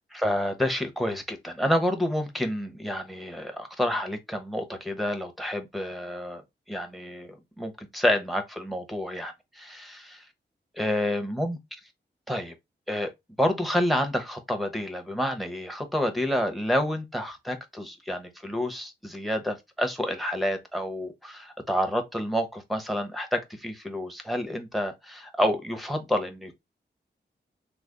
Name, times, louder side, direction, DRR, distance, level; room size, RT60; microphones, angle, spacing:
voice 1, 0.1-6.4 6.7-10.2 10.7-11.6 12.3-12.5 12.9-13.1 13.4-26.5, equal, ahead, 0.8 m, -29 dB
3.3 x 2.0 x 3.5 m
cardioid pair, 55°, 19 cm